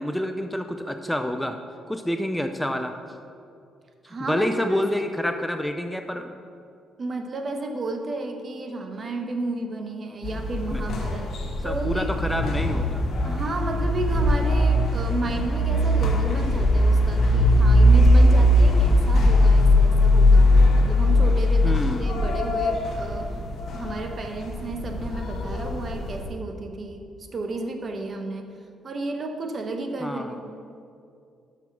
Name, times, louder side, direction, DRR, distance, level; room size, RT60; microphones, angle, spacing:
voice 1, 0.0-1.6 1.9-2.9 4.2-6.3 10.7-10.8 11.6-13.0 21.6-22.1 30.0-30.4, equal, 5° left, 6 dB, 0.4 m, -27 dB
voice 2, 4.1-4.9 7.0-11.3 11.6-12.5 13.2-23.3 23.7-28.5 28.8-30.4, right 2 dB, 45° right, 5 dB, 0.8 m, -32 dB
sound 1, 10.2-26.3, left 1 dB, 60° left, 1.1 m, -20 dB
5.9 x 5.8 x 5.9 m, 2.5 s
cardioid pair, 90°, 0 cm